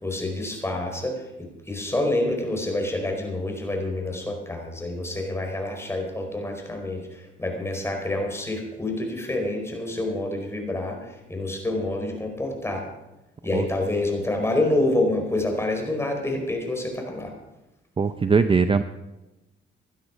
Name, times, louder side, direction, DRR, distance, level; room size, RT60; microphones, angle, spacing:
voice 1, 0.0-12.8 13.4-17.3, left 2 dB, 15° left, 3 dB, 4.6 m, -27 dB
voice 2, 18.0-18.8, right 5 dB, 25° right, 10 dB, 0.6 m, -20 dB
17.0 x 11.5 x 5.1 m, 0.98 s
cardioid pair, 90°, 20 cm